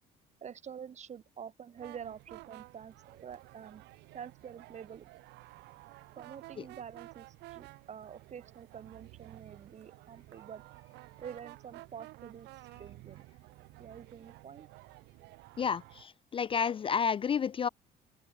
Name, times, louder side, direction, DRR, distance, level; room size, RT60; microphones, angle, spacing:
voice 1, 0.4-3.8 4.1-5.1 6.2-10.6 11.2-12.5 12.8-13.2 13.8-14.7, right 8 dB, 45° right, 3.5 m, -47 dB
sound 1, 1.8-16.0, right 20 dB, 90° right, 2.1 m, -53 dB
voice 2, 15.6-17.7, left 7 dB, 30° left, 0.4 m, -30 dB
open air
cardioid pair, 110°, 17 cm